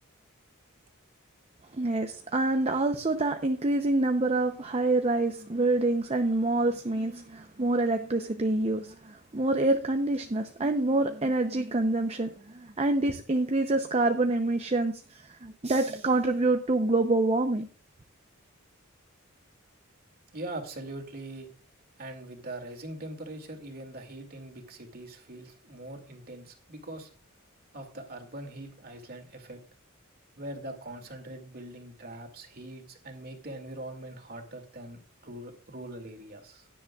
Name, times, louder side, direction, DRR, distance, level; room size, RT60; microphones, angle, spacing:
voice 1, 1.7-17.7, right 2 dB, 30° right, 0.6 m, -26 dB
voice 2, 20.3-21.5 22.0-27.1 27.7-29.6 30.4-36.7, right 1 dB, 45° right, 2.2 m, -42 dB
16.0 x 10.0 x 2.4 m
head